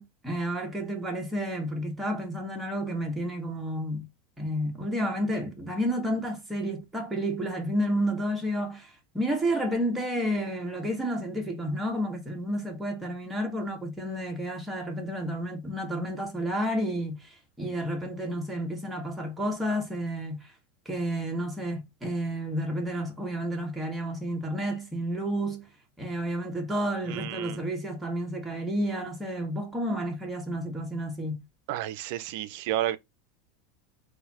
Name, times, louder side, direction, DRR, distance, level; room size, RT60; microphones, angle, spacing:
voice 1, 0.0-4.1 4.4-20.5 20.8-25.7 26.0-31.4, equal, 5° right, 1.6 m, -31 dB
voice 2, 27.1-27.6 31.7-33.0, right 13 dB, 65° right, 0.6 m, -31 dB
3.9 x 2.8 x 4.1 m
supercardioid pair, 125°, 0 cm